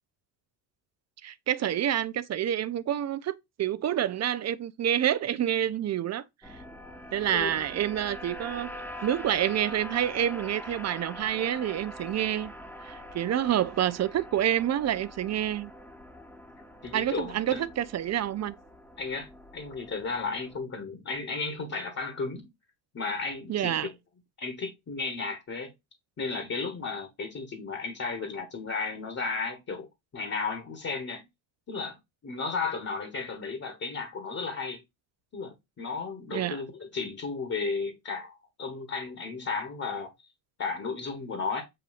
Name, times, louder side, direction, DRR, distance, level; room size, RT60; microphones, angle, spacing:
voice 1, 1.2-6.2 7.1-8.7 9.0-12.5 12.8-15.7 16.9-18.6 23.5-23.9 36.3-36.6, right 11 dB, 35° right, 0.5 m, -28 dB
sound 1, 6.4-20.6, equal, 5° left, 1.1 m, -44 dB
voice 2, 7.3-7.7 16.8-17.6 19.0-19.3 19.5-22.5 22.9-23.8 24.4-25.7 26.2-29.9 30.1-31.2 31.7-34.8 35.3-40.1 40.6-41.6, left 4 dB, 30° left, 1.4 m, -34 dB
7.8 x 2.7 x 2.5 m
supercardioid pair, 75°, 47 cm